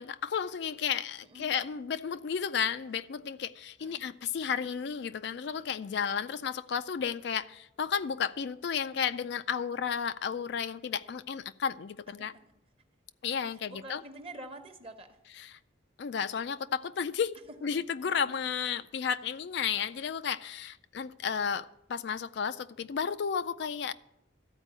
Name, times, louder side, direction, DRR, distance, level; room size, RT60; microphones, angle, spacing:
voice 1, 0.0-12.3 13.2-14.0 15.4-15.6 16.0-23.9, left 7 dB, 60° left, 12 dB, 0.4 m, -33 dB
voice 2, 13.5-15.2 20.0-20.1, right 1 dB, 30° right, 6 dB, 1.0 m, -46 dB
13.5 x 4.5 x 8.7 m, 0.85 s
head